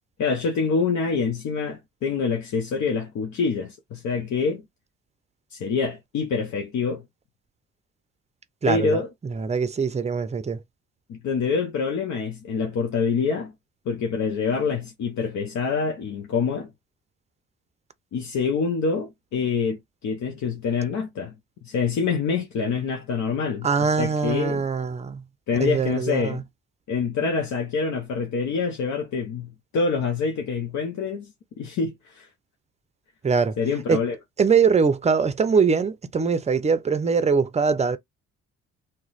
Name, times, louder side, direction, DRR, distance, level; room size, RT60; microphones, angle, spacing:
voice 1, 0.2-4.6 5.5-7.0 8.7-9.1 11.1-13.5 13.9-16.7 18.1-21.4 21.6-24.6 25.5-26.5 26.9-32.3 33.6-34.2, left 5 dB, 70° left, 0.8 m, -26 dB
voice 2, 8.6-10.6 23.6-25.2 25.6-26.4 33.2-33.6 33.9-34.0 34.4-38.0, right 5 dB, 20° right, 0.5 m, -22 dB
2.9 x 2.1 x 3.9 m
cardioid pair, 90°, 30 cm